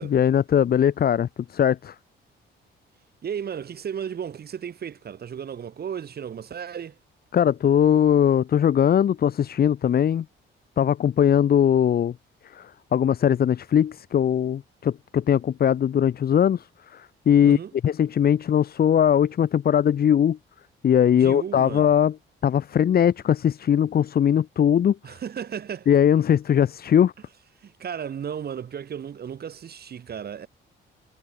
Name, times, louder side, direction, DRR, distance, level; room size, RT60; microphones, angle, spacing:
voice 1, 0.0-1.9 7.3-10.3 10.8-12.1 12.4-20.4 20.8-22.1 22.4-25.0 25.9-27.1, left 9 dB, 50° left, 1.1 m, -20 dB
voice 2, 3.2-7.0 17.4-17.7 21.1-21.9 25.0-25.9 27.6-30.5, right 8 dB, 50° right, 3.9 m, -34 dB
cardioid pair, 120°, 21 cm